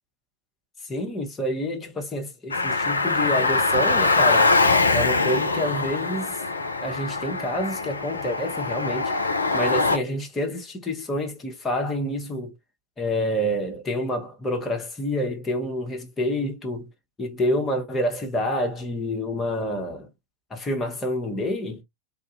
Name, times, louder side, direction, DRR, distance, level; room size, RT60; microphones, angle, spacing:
voice 1, 0.9-4.5 4.9-6.3 6.8-9.1 9.5-12.5 13.0-16.9 17.2-20.1 20.5-21.8, left 1 dB, 15° left, 1.0 m, -28 dB
Car, 2.5-10.0, left 3 dB, 75° left, 0.4 m, -23 dB
3.7 x 2.6 x 2.5 m
figure-of-eight pair, 90°, 0 cm